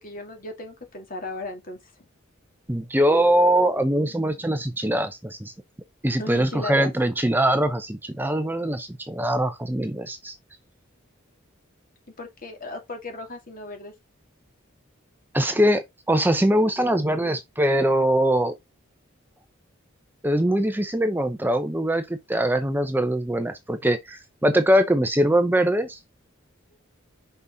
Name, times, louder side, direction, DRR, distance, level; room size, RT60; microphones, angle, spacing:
voice 1, 0.0-2.0 6.2-6.9 12.2-13.9 26.7-26.8, left 2 dB, 45° left, 2.7 m, -36 dB
voice 2, 2.7-5.5 6.0-10.4 15.3-18.5 20.2-26.0, right 1 dB, 10° right, 0.6 m, -22 dB
6.0 x 5.6 x 3.9 m
head